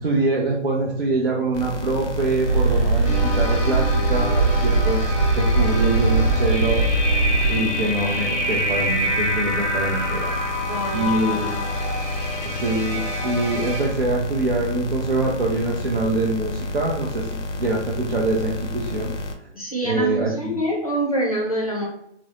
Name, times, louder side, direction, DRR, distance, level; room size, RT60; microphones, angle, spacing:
voice 1, 0.0-5.1 5.4-6.9 7.5-10.3 10.9-11.6 12.4-17.3 17.6-19.1 19.8-20.6, right 2 dB, 55° right, -3 dB, 0.5 m, -24 dB
sound 1, 1.5-19.3, left 2 dB, 80° left, 0.6 m, -30 dB
sound 2, 2.4-7.5, right 3 dB, 85° right, 1.1 m, -20 dB
sound 3, 3.0-13.9, left 1 dB, 10° right, 0.8 m, -27 dB
voice 2, 10.7-11.6 19.5-21.9, right 1 dB, 30° left, -3 dB, 0.5 m, -26 dB
2.5 x 2.0 x 2.9 m, 0.72 s
hypercardioid pair, 180°, 35 cm